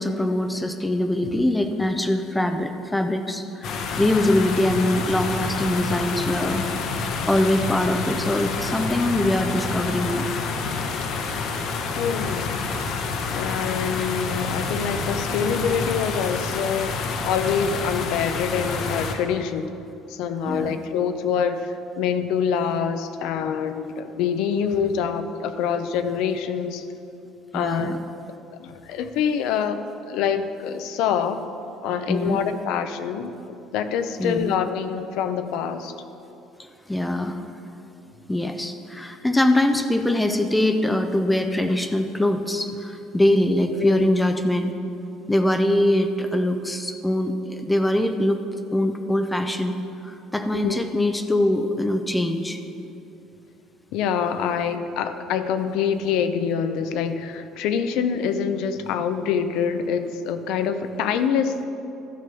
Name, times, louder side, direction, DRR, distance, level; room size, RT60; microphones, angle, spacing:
voice 1, 0.0-6.6 7.3-10.3 20.4-20.8 27.5-28.0 32.1-32.4 34.2-34.5 36.9-37.4 38.3-44.7 45.3-48.4 48.7-49.7 50.0-52.6, left 1 dB, 5° left, 7 dB, 0.4 m, -23 dB
sound 1, 3.6-19.2, left 4 dB, 55° left, 0.9 m, -28 dB
voice 2, 12.0-12.6 12.9-13.0 13.3-19.7 20.1-26.8 27.5-28.0 28.6-29.8 30.1-31.4 31.8-35.9 43.8-44.1 50.5-50.9 53.9-61.6, left 7 dB, 70° left, 9 dB, 0.6 m, -25 dB
12.5 x 5.2 x 6.8 m, 2.8 s
cardioid pair, 155°, 0 cm